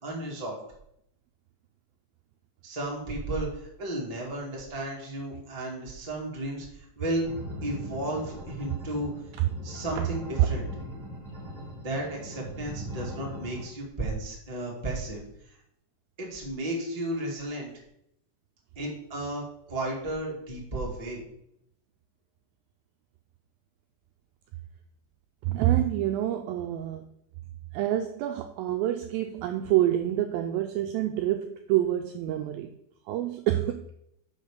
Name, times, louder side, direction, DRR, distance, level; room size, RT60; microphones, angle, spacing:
voice 1, 0.0-0.6 2.6-7.2 7.6-9.1 9.6-10.6 11.8-15.2 16.2-17.7 18.7-21.2, right 1 dB, 15° right, -3 dB, 1.2 m, -33 dB
sound 1, 7.2-13.6, right 1 dB, 35° right, 3.4 m, -40 dB
voice 2, 25.4-27.1 27.7-32.7 33.1-33.9, right 13 dB, 85° right, 6 dB, 2.1 m, -27 dB
6.3 x 5.4 x 6.6 m, 0.75 s
omnidirectional pair, 4.7 m